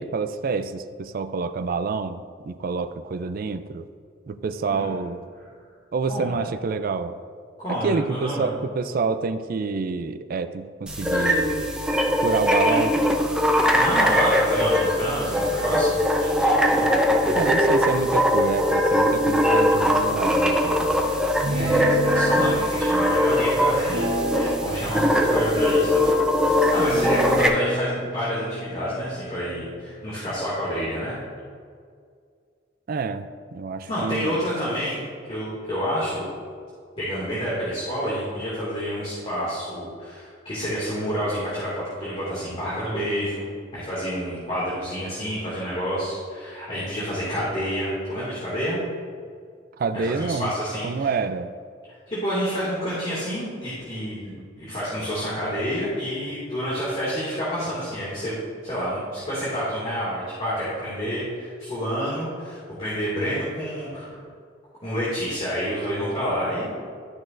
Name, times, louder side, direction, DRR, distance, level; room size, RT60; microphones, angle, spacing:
voice 1, 0.0-3.9 4.3-5.2 5.9-7.2 7.7-11.7 12.2-13.0 17.3-21.0 32.9-34.4 49.8-50.5 50.8-51.5, right 4 dB, 50° right, 10 dB, 0.4 m, -27 dB
voice 2, 6.1-6.4 7.6-8.5 13.7-17.5 21.4-31.2 33.9-35.0 35.3-36.3 37.0-41.7 42.0-48.8 49.9-51.1 52.1-58.4 58.6-64.1 64.8-66.7, equal, 30° left, -9 dB, 2.1 m, -28 dB
sound 1, 10.9-27.5, left 1 dB, 5° right, 0.6 m, -21 dB
Guitar, 21.4-22.6 23.9-24.8 25.1-26.3 26.9-30.3, right 1 dB, 85° right, 1.2 m, -31 dB
12.5 x 6.1 x 2.6 m, 2.1 s
head